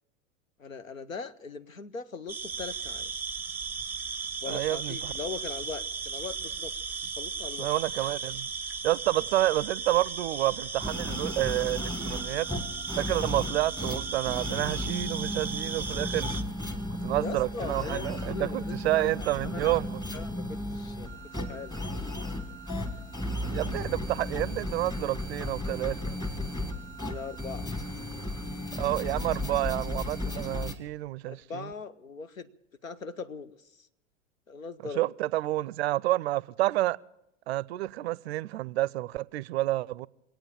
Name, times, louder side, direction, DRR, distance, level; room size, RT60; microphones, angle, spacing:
voice 1, 0.6-3.1 4.4-6.7 7.2-7.7 17.2-19.7 20.1-21.8 27.0-27.7 31.3-32.5 32.8-33.9 34.5-35.0, left 5 dB, 85° left, 0.8 m, -40 dB
sound 1, 2.3-16.4, right 5 dB, 5° right, 0.6 m, -36 dB
voice 2, 4.5-5.1 7.6-8.5 8.8-12.5 13.0-16.3 16.9-20.0 23.5-26.2 28.8-31.7 35.0-37.0 37.5-40.1, right 16 dB, 55° right, 0.5 m, -29 dB
sound 2, 10.8-30.8, left 1 dB, 10° left, 1.5 m, -35 dB
22.5 x 8.8 x 7.3 m
figure-of-eight pair, 85°, 39 cm